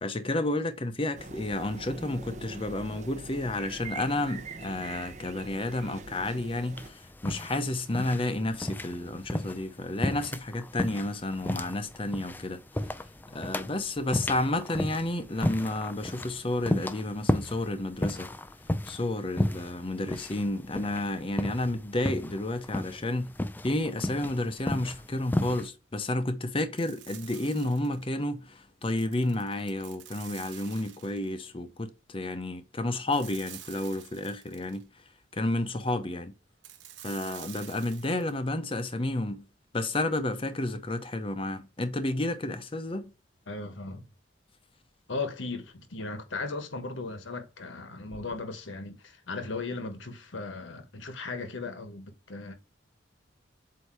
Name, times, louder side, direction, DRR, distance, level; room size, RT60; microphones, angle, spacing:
voice 1, 0.0-12.9 13.3-18.3 18.9-23.3 23.6-34.9 35.3-36.3 37.0-39.4 39.7-43.1, left 1 dB, 30° left, 0.7 m, -31 dB
sound 1, 1.1-6.9, right 3 dB, 40° right, 0.8 m, -43 dB
sound 2, 6.8-25.7, left 1 dB, 10° left, 0.3 m, -34 dB
sound 3, 26.8-28.1 28.8-31.4 33.1-34.8 36.6-38.3, right 11 dB, 75° right, 1.1 m, -48 dB
voice 2, 43.5-44.1 45.1-52.5, left 3 dB, 85° left, 1.3 m, -37 dB
8.0 x 2.8 x 4.4 m
head